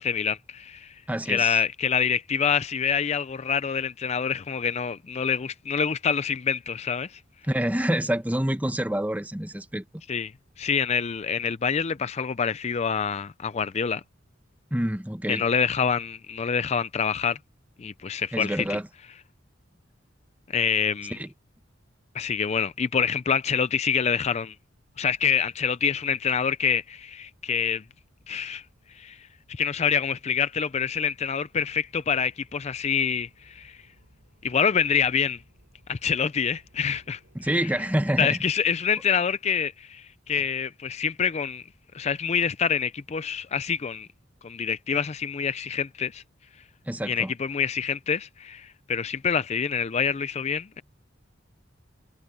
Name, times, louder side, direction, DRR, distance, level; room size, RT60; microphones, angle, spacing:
voice 1, 0.0-1.0 1.3-7.2 10.1-10.3 10.6-14.0 15.3-17.4 17.8-18.7 20.5-21.2 22.1-24.5 25.0-27.8 28.3-28.6 28.9-33.8 34.4-35.4 35.9-37.2 37.5-37.7 38.2-41.6 41.9-44.1 44.4-46.2 47.1-50.8, left 7 dB, 35° left, 0.4 m, -26 dB
voice 2, 1.1-1.6 7.4-9.8 14.7-15.5 18.3-18.9 21.1-21.3 37.3-38.4 46.9-47.3, right 1 dB, 10° right, 1.0 m, -27 dB
sound 1, 24.9-38.6, equal, 65° right, 7.1 m, -62 dB
head